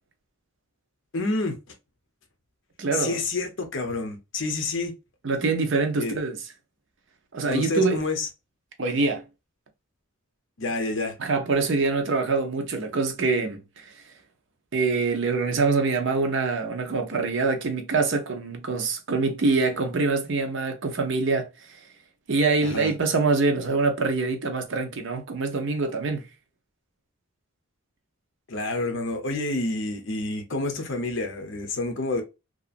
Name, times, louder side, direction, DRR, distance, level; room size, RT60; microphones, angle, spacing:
voice 1, 1.1-1.6 2.9-4.9 6.0-6.2 7.5-8.3 10.6-11.2 22.6-22.9 28.5-32.2, left 2 dB, 60° left, 0.7 m, -28 dB
voice 2, 2.8-3.2 5.2-6.4 7.3-8.0 8.8-9.2 11.2-13.8 14.7-21.5 22.3-26.2, right 3 dB, 60° right, 0.6 m, -24 dB
2.9 x 2.4 x 2.3 m
head